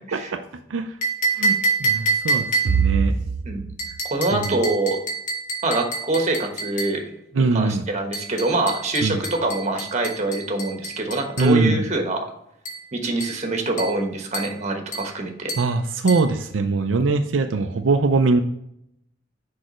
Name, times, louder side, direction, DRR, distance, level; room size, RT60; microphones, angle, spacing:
sound 1, 1.0-3.0 3.8-7.0 8.1-11.6 12.6-12.9 13.2-13.4 13.8-14.0 14.3-14.6 14.9-15.1 15.5-15.7 16.1-16.3, right 3 dB, 45° left, 1.4 m, -27 dB
voice 1, 1.4-3.2 4.3-4.6 7.3-7.8 9.0-9.2 11.4-11.8 15.6-18.4, right 4 dB, 85° right, 6 dB, 0.5 m, -21 dB
voice 2, 4.1-5.0 5.6-7.0 7.3-12.2 12.9-15.5, right 2 dB, 40° right, 3 dB, 1.2 m, -25 dB
6.4 x 4.8 x 3.1 m, 0.76 s
head